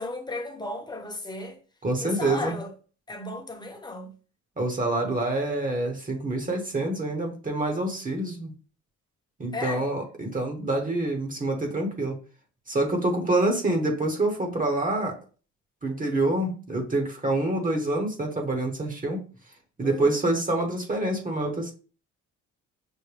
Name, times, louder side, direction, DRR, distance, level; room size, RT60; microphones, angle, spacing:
voice 1, 0.0-1.6 2.0-2.7 3.1-4.1 9.5-9.9 19.8-20.2, left 2 dB, 15° left, 0.9 m, -35 dB
voice 2, 1.8-2.6 4.6-8.5 9.4-12.2 12.7-15.2 15.8-19.2 19.8-21.7, right 2 dB, 25° right, 1.1 m, -26 dB
6.3 x 2.1 x 3.3 m
cardioid pair, 90°, 30 cm